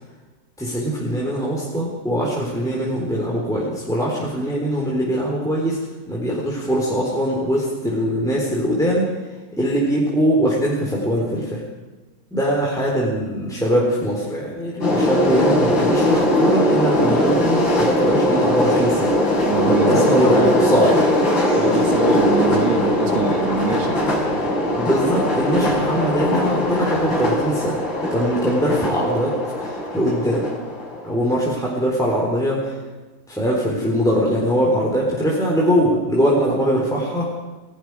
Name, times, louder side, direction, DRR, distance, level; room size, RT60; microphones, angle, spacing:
voice 1, 0.6-5.8 6.1-9.1 9.6-11.6 12.3-21.1 24.7-27.8 28.1-30.5 31.0-32.8 33.3-37.3, equal, ahead, -4 dB, 3.9 m, -22 dB
sound 1, 14.8-31.3, left 1 dB, 85° left, 5.9 m, -20 dB
voice 2, 19.5-20.6 21.5-24.0 24.4-24.5, right 4 dB, 80° right, 3 dB, 2.6 m, -25 dB
29.5 x 18.0 x 4.9 m, 1.2 s
omnidirectional pair, 2.1 m